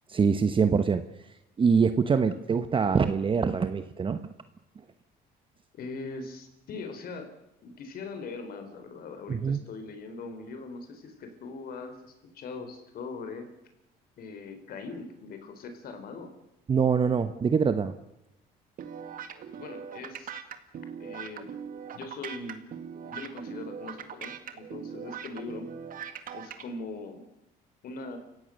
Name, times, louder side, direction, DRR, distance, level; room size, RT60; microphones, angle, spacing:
voice 1, 0.1-1.0 1.6-4.2 9.3-9.6 16.7-17.9, right 6 dB, 30° right, 10 dB, 1.1 m, -24 dB
voice 2, 5.7-7.3 7.6-13.5 14.2-16.3 19.5-20.3 21.0-21.5 21.9-22.6 23.0-25.7 26.3-27.2 27.8-28.2, left 3 dB, 65° left, 7 dB, 4.3 m, -41 dB
sound 1, 18.8-26.6, right 8 dB, 55° right, 2.1 m, -40 dB
29.5 x 16.5 x 6.5 m, 0.91 s
cardioid pair, 110°, 17 cm